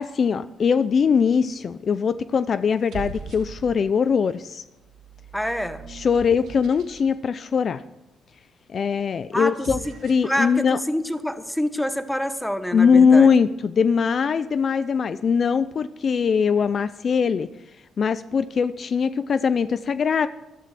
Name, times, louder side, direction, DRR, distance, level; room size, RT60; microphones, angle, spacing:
voice 1, 0.0-4.6 5.9-7.8 8.7-10.8 12.7-17.5 18.0-20.3, left 6 dB, 50° left, 14 dB, 0.5 m, -21 dB
sound 1, 1.4-1.9 2.7-4.0 4.8-7.1 9.4-10.4, right 5 dB, 70° right, 2.9 m, -40 dB
voice 2, 5.3-5.8 9.3-9.5 9.9-10.0 10.2-13.3, equal, 5° left, 11 dB, 1.0 m, -26 dB
13.5 x 12.0 x 5.8 m, 0.96 s
cardioid pair, 90°, 0 cm